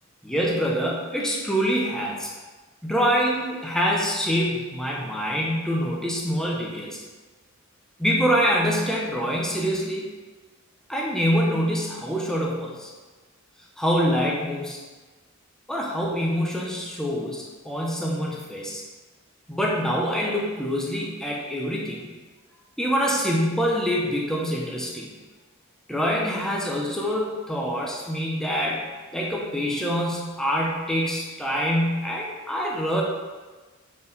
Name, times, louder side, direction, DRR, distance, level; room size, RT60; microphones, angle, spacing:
voice 1, 0.2-2.3 2.8-7.0 8.0-10.1 10.9-12.9 13.8-14.8 15.7-18.8 19.5-22.1 22.8-25.1 25.9-28.8 29.1-33.0, equal, 5° left, -3 dB, 0.8 m, -25 dB
7.1 x 4.6 x 4.0 m, 1.3 s
head